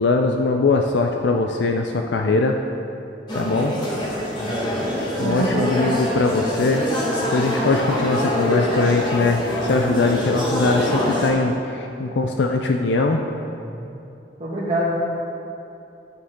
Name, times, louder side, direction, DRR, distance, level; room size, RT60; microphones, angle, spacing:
voice 1, 0.0-2.6 3.3-3.8 5.2-6.8 7.3-13.2, left 3 dB, 85° left, 3 dB, 0.5 m, -21 dB
sound 1, 3.3-11.3, equal, 25° left, 1.8 m, -24 dB
voice 2, 5.2-5.7 13.5-13.8 14.4-14.9, right 1 dB, 40° right, -8 dB, 1.5 m, -25 dB
11.0 x 6.7 x 3.7 m, 2.8 s
head